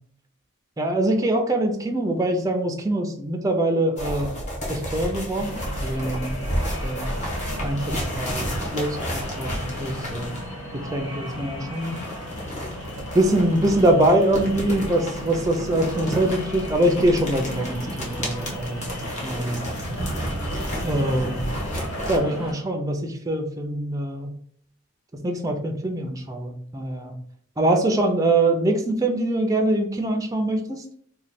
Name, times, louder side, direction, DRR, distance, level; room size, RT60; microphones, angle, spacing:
voice 1, 0.8-4.3 4.7-7.1 7.6-10.3 10.9-12.0 13.1-18.9 19.2-19.7 20.8-21.4 22.1-24.3 25.1-27.1 27.6-30.8, right 1 dB, 15° right, 3 dB, 0.4 m, -24 dB
sound 1, 4.0-10.5 11.8-22.2, equal, 35° left, 1.0 m, -31 dB
sound 2, 5.4-22.5, equal, 90° left, 1.4 m, -35 dB
3.1 x 2.2 x 4.1 m, 0.62 s
head